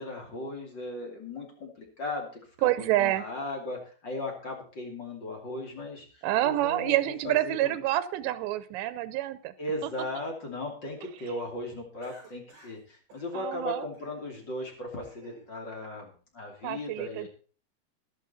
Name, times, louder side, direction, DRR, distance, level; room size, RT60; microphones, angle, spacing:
voice 1, 0.0-2.3 2.6-2.7 3.0-7.0 7.2-7.8 9.6-17.3, left 2 dB, 30° left, 1 dB, 2.6 m, -37 dB
voice 2, 2.6-3.3 6.2-9.5 9.8-9.9 13.3-13.9 16.6-17.3, right 15 dB, 90° right, 14 dB, 3.0 m, -27 dB
Cough, 12.0-12.8 13.1-13.3 13.9-14.4 14.8-15.5, right 3 dB, 45° right, 7.9 m, -55 dB
14.0 x 11.5 x 4.2 m, 0.38 s
omnidirectional pair, 5.0 m